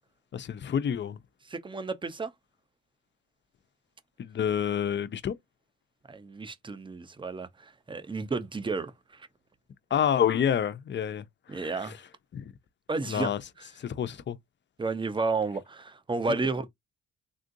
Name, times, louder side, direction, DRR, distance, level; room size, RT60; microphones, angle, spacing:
voice 1, 0.3-1.2 4.2-5.3 9.9-11.3 11.5-11.7 12.3-12.5 13.1-13.4 13.8-14.4, left 9 dB, 40° left, 0.5 m, -28 dB
voice 2, 1.5-2.3 6.1-9.3 11.5-12.0 12.9-13.3 13.6-13.7 14.8-16.7, right 3 dB, 15° right, 0.6 m, -32 dB
3.6 x 2.4 x 2.6 m
cardioid pair, 90°, 30 cm